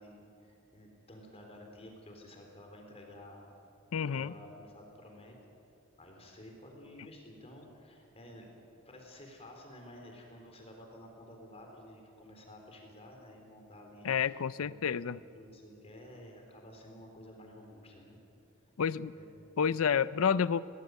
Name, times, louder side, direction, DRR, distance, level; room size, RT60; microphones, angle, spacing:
voice 1, 0.0-3.4 4.1-5.4 6.0-8.5 8.9-14.8 15.3-18.2 19.1-19.5, left 1 dB, 30° left, 1 dB, 3.9 m, -52 dB
voice 2, 3.9-4.3 14.0-15.2 18.8-19.1 19.6-20.6, left 7 dB, 90° left, 17 dB, 0.5 m, -29 dB
20.5 x 19.0 x 8.1 m, 2.6 s
head